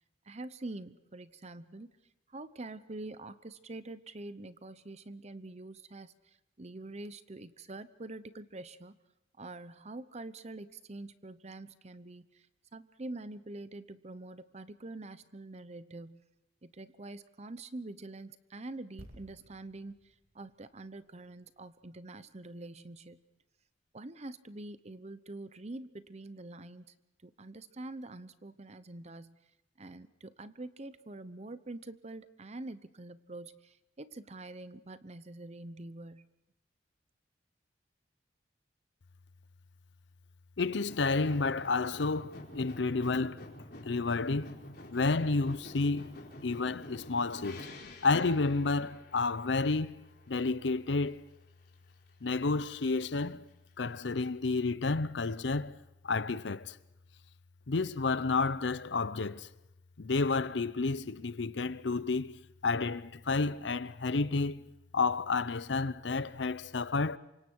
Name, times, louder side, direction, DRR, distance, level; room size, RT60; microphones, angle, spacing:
voice 1, 0.3-1.9 2.3-9.0 9.4-12.5 12.7-16.2 16.6-19.9 20.3-23.2 23.9-26.8 27.2-29.4 29.8-36.3, right 2 dB, 35° right, 0.9 m, -45 dB
sound 1, 19.0-22.6 22.9-23.1, equal, 55° right, 3.2 m, -57 dB
voice 2, 40.6-43.5 43.8-44.6 44.9-46.2 46.4-51.2 52.2-53.5 53.8-55.8 56.0-56.8 57.7-59.5 60.0-64.6 64.9-67.2, left 3 dB, 70° left, 0.7 m, -31 dB
sound 2, 40.7-50.7 50.9-51.7 52.1-52.2, left 1 dB, 55° left, 4.6 m, -49 dB
28.0 x 25.0 x 4.7 m
head